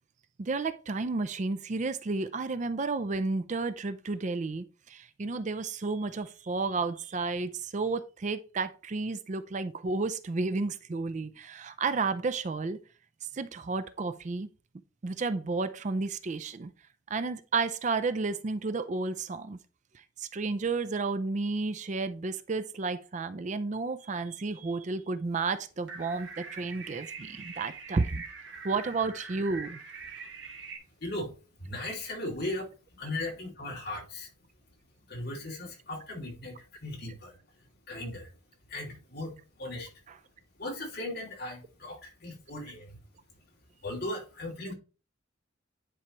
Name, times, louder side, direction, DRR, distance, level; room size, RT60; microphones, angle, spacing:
voice 1, 0.4-12.8 13.3-14.5 15.0-16.7 17.1-19.6 19.9-28.2 28.6-29.8, right 3 dB, 35° right, 0.4 m, -32 dB
sound 1, 25.9-30.8, right 4 dB, 65° right, 1.6 m, -43 dB
voice 2, 31.6-32.7 33.0-34.3 35.1-37.4 37.9-38.3 38.7-39.3 39.6-39.9 40.6-43.0 43.8-44.7, left 1 dB, 55° left, 2.8 m, -37 dB
10.0 x 4.7 x 3.1 m
head